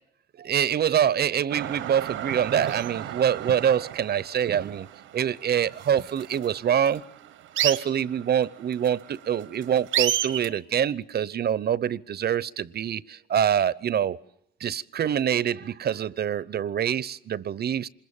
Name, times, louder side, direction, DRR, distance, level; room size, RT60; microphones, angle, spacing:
voice 1, 0.4-4.9 5.1-7.0 7.6-14.2 14.6-17.9, right 9 dB, 55° right, 0.9 m, -25 dB
sound 1, 1.5-10.5, right 11 dB, 85° right, 1.2 m, -32 dB
26.5 x 21.5 x 7.1 m
cardioid pair, 90°, 20 cm